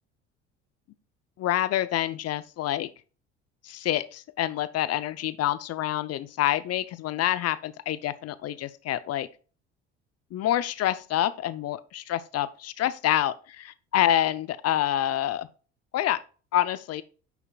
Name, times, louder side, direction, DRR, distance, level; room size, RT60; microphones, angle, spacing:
voice 1, 1.4-2.9 3.6-9.3 10.3-15.5 15.9-16.2 16.5-17.0, left 12 dB, 45° left, 0.6 m, -27 dB
9.5 x 5.8 x 2.3 m
hypercardioid pair, 65°, 34 cm